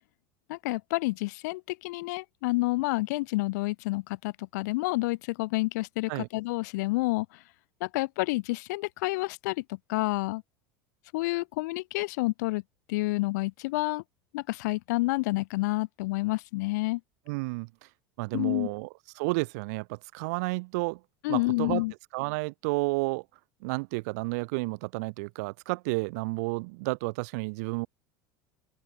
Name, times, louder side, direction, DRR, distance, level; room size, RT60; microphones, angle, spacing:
voice 1, 0.5-7.3 7.8-9.6 9.9-10.4 11.1-12.6 12.9-14.0 14.3-17.0 18.3-18.7 21.2-21.9, left 22 dB, 75° left, 4.6 m, -29 dB
voice 2, 17.3-17.7 18.2-18.9 19.2-21.0 21.3-21.8 22.1-23.2 23.6-27.9, right 28 dB, 65° right, 6.1 m, -31 dB
open air
cardioid pair, 165°, 9 cm